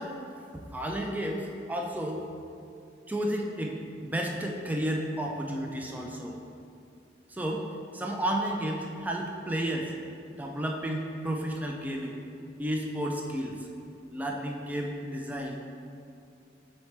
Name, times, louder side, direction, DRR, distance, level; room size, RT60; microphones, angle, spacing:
voice 1, 0.0-2.3 3.1-6.4 7.3-7.7 7.9-9.9 10.4-12.2 12.6-13.7 14.1-15.6, right 1 dB, 10° right, 0 dB, 0.4 m, -32 dB
4.4 x 4.4 x 5.8 m, 2.5 s
head